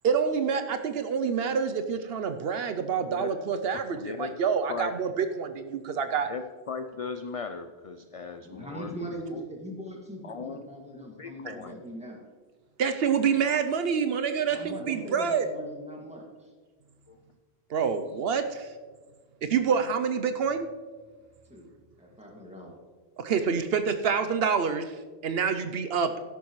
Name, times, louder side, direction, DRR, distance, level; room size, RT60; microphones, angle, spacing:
voice 1, 0.0-6.3 12.8-15.5 17.7-18.7 19.4-20.7 23.2-24.9 25.2-26.1, right 6 dB, 70° right, 8 dB, 0.8 m, -27 dB
voice 2, 3.7-4.3 4.7-4.9 6.3-8.9 9.3-9.4 10.2-10.6 11.2-11.8 17.1-17.2 19.5-19.6, left 5 dB, 50° left, 8 dB, 0.4 m, -38 dB
voice 3, 8.4-12.2 14.5-16.5 21.5-21.7 22.0-22.8, right 1 dB, 5° right, -2 dB, 2.0 m, -41 dB
13.0 x 11.0 x 3.1 m, 1.4 s
omnidirectional pair, 1.1 m